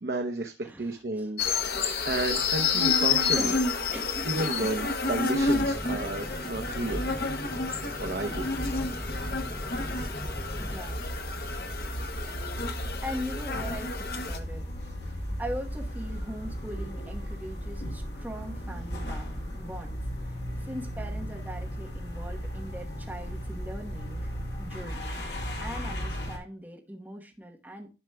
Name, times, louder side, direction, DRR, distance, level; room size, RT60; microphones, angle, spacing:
voice 1, 0.0-3.5 4.2-7.0 8.0-8.5, right 2 dB, 65° right, 3 dB, 0.7 m, -32 dB
voice 2, 0.6-1.3 3.3-3.7 3.9-4.3 4.6-4.7 10.6-11.1 13.0-14.6 15.4-25.2 25.6-27.9, equal, 10° right, 0 dB, 1.0 m, -40 dB
sound 1, 1.4-14.4, left 4 dB, 60° left, 0.8 m, -30 dB
sound 2, 5.4-10.8, equal, 15° left, 0.7 m, -38 dB
sound 3, 8.5-26.4, equal, 75° left, 1.5 m, -36 dB
11.0 x 5.9 x 2.2 m, 0.31 s
head